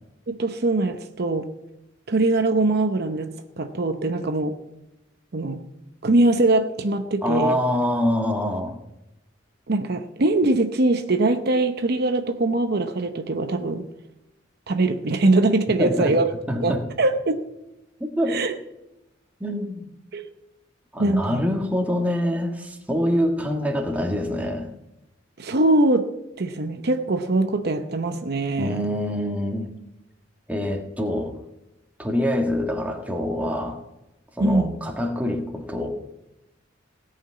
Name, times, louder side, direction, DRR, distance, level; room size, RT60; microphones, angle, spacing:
voice 1, 0.3-1.5 2.1-4.5 5.3-5.6 6.0-7.5 9.7-13.9 14.7-16.3 16.6-17.4 18.3-18.5 20.1-20.3 21.0-21.4 25.4-26.1 26.4-28.8 34.4-34.8, right 2 dB, 55° right, 7 dB, 0.7 m, -22 dB
voice 2, 7.2-8.8 15.8-16.1 16.5-16.8 18.2-18.4 19.4-19.8 20.9-24.7 28.6-29.7 30.5-31.3 32.0-33.8 34.4-35.9, left 1 dB, 10° right, 2 dB, 1.5 m, -25 dB
17.5 x 5.8 x 8.5 m, 0.94 s
head